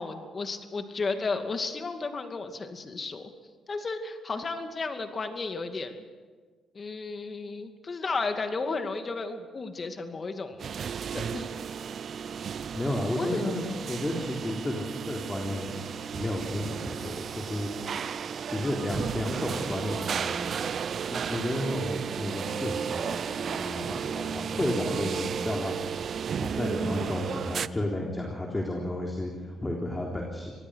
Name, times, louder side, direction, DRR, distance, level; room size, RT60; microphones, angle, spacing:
voice 1, 0.0-3.3 3.7-5.9 6.7-10.6 11.1-11.5 13.1-13.4, left 3 dB, 35° left, 6 dB, 2.4 m, -33 dB
sound 1, 10.6-27.7, right 7 dB, 55° right, 0.6 m, -33 dB
voice 2, 12.7-15.8 16.1-17.7 18.5-20.7 21.1-25.8 26.4-30.5, left 1 dB, 20° left, 0 dB, 3.6 m, -32 dB
25.5 x 19.0 x 6.5 m, 1.5 s
cardioid pair, 90°, 0 cm